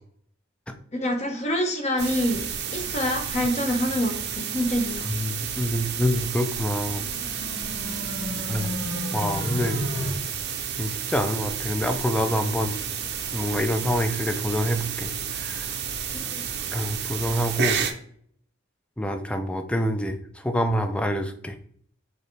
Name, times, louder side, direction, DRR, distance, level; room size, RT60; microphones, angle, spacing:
voice 1, 0.9-2.4 2.7-5.0 16.1-16.4, equal, 30° left, 4 dB, 0.8 m, -26 dB
sound 1, 2.0-17.9, right 7 dB, 50° right, 0.5 m, -31 dB
voice 2, 5.1-7.0 8.5-8.7 9.1-9.8 10.8-12.7 13.3-15.1 15.4-15.7 16.7-17.8 19.0-21.6, equal, 5° left, 7 dB, 0.3 m, -26 dB
sound 2, 6.9-10.1, left 1 dB, 65° left, 1.2 m, -33 dB
4.6 x 3.1 x 3.2 m, 0.63 s
head